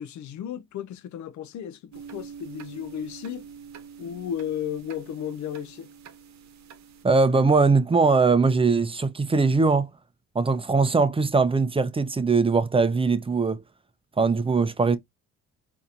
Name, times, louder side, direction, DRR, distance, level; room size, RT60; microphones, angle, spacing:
voice 1, 0.0-3.4 4.0-5.9, left 9 dB, 70° left, 0.6 m, -34 dB
sound 1, 1.9-7.0, right 7 dB, 65° right, 0.9 m, -45 dB
voice 2, 7.0-9.9 10.3-13.6 14.2-15.0, right 4 dB, 20° right, 0.6 m, -21 dB
4.1 x 2.7 x 2.4 m
cardioid pair, 90°, 30 cm